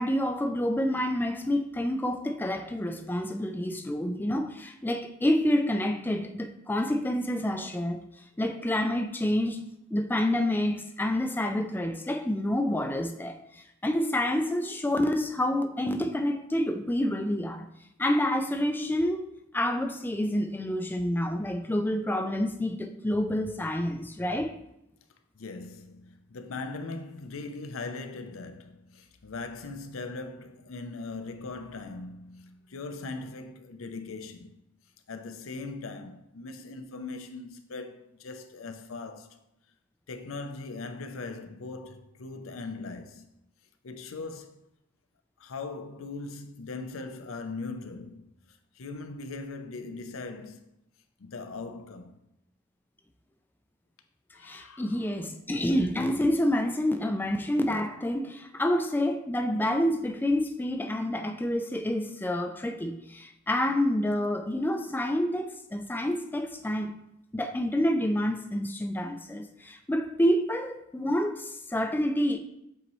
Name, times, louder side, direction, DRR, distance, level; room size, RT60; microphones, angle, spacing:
voice 1, 0.0-8.0 8.4-9.6 9.9-17.7 18.0-19.3 19.5-24.6 54.4-66.9 67.3-72.4, left 1 dB, 10° left, 0.3 m, -28 dB
voice 2, 25.3-34.6 35.1-39.4 40.1-43.3 43.8-44.7 45.4-48.2 48.5-50.7 51.2-52.2 54.3-55.1, left 3 dB, 80° left, 0.6 m, -40 dB
7.8 x 4.1 x 3.1 m
head